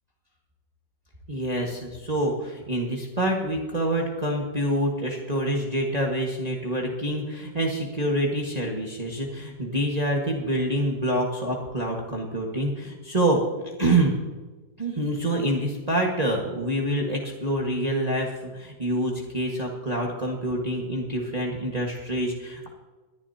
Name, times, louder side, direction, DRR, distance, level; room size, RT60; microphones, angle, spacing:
voice 1, 1.3-13.4 13.8-14.1 14.8-22.7, right 1 dB, 20° right, -1 dB, 1.6 m, -26 dB
22.5 x 11.0 x 2.8 m, 1.3 s
omnidirectional pair, 2.1 m